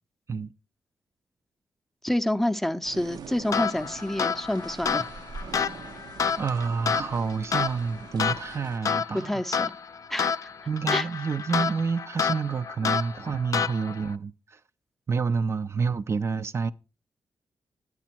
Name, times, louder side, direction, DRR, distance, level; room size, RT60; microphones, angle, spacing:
voice 1, 2.0-5.1 9.2-9.8 10.1-10.5 10.9-11.1, left 1 dB, 5° left, 0.6 m, -28 dB
sound 1, 2.8-8.8, right 5 dB, 80° right, 0.8 m, -44 dB
sound 2, 3.5-14.1, left 6 dB, 50° left, 0.5 m, -29 dB
voice 2, 6.4-9.4 10.7-14.6 15.1-16.7, right 5 dB, 40° right, 0.5 m, -28 dB
11.0 x 8.3 x 4.4 m
cardioid pair, 100°, 7 cm